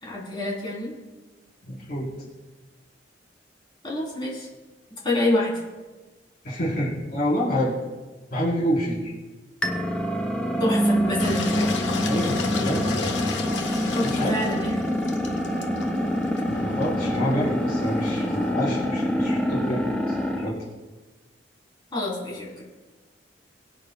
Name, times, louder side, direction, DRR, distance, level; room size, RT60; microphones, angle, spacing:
voice 1, 0.0-0.9 3.8-4.5 5.0-5.6 10.6-11.5 13.9-14.7 21.9-22.5, left 1 dB, 25° left, -4 dB, 3.6 m, -27 dB
voice 2, 1.6-2.1 6.4-7.7 8.3-9.0 12.0-12.9 14.0-14.3 16.6-20.2 20.4-20.6, equal, 55° left, -7 dB, 4.1 m, -27 dB
sound 1, 9.6-20.5, equal, 5° left, 1.0 m, -26 dB
Engine, 11.2-18.5, left 3 dB, 85° left, 1.3 m, -33 dB
22.0 x 9.1 x 2.3 m, 1.2 s
head